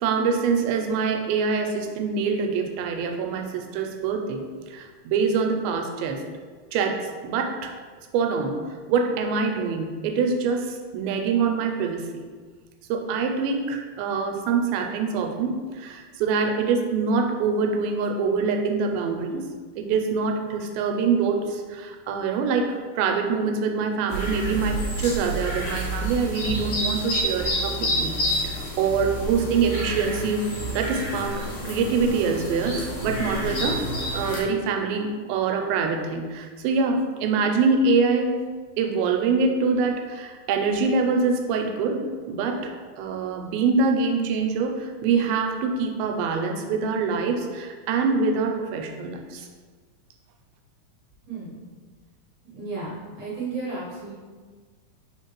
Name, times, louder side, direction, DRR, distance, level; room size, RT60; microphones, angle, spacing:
voice 1, 0.0-4.4 4.7-6.2 6.7-7.7 8.1-8.6 8.9-12.2 12.9-19.5 19.8-30.5 30.7-33.8 34.1-38.4 38.8-49.5, right 5 dB, 90° right, 4 dB, 2.4 m, -25 dB
sound 1, 24.1-34.4, equal, 70° left, 2.3 m, -29 dB
voice 2, 51.3-51.7 52.5-54.1, right 3 dB, 60° right, -8 dB, 2.0 m, -33 dB
5.0 x 3.6 x 2.9 m, 1.5 s
omnidirectional pair, 4.1 m